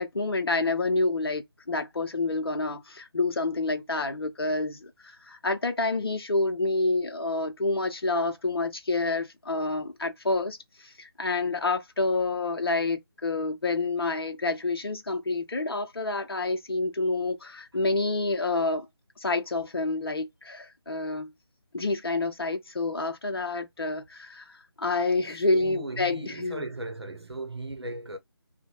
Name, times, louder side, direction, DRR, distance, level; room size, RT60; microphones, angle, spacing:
voice 1, 0.0-18.9 19.2-21.3 21.7-26.6, left 3 dB, 65° left, 0.5 m, -28 dB
voice 2, 25.5-28.2, right 2 dB, 75° right, 0.8 m, -37 dB
2.6 x 2.1 x 2.9 m
figure-of-eight pair, 155°, 14 cm